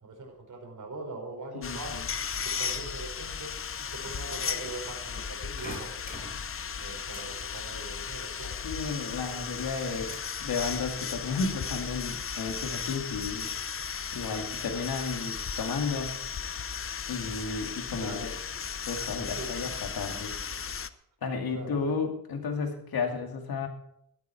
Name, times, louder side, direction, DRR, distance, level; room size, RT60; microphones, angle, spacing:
voice 1, 0.0-2.0 2.4-3.5 3.9-6.2 6.8-8.6 9.3-9.4 17.9-18.3 19.1-19.5 21.5-22.0, right 2 dB, 60° right, 1 dB, 4.9 m, -42 dB
sound 1, 1.6-20.9, left 6 dB, 40° left, 0.7 m, -36 dB
sound 2, 5.6-7.3 7.5-9.3 9.6-10.4 10.9-11.4, left 1 dB, 25° left, 4.9 m, -45 dB
voice 2, 8.6-10.1 10.4-13.5 14.1-16.1 17.1-18.2 18.9-20.3 21.2-23.7, left 4 dB, 85° left, 4 dB, 2.4 m, -33 dB
13.5 x 12.5 x 4.7 m, 0.75 s
wide cardioid pair, 125°, 35 cm